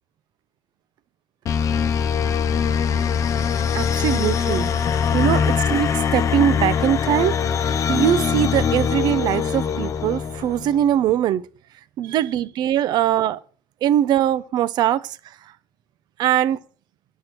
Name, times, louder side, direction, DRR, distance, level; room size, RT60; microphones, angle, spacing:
sound 1, 1.5-10.9, left 7 dB, 35° left, 0.6 m, -22 dB
voice 1, 3.7-4.7 5.1-11.4 12.0-13.4 13.8-15.2 16.2-16.6, right 11 dB, 45° right, 0.5 m, -21 dB
8.1 x 7.6 x 4.4 m
cardioid pair, 170°, 10 cm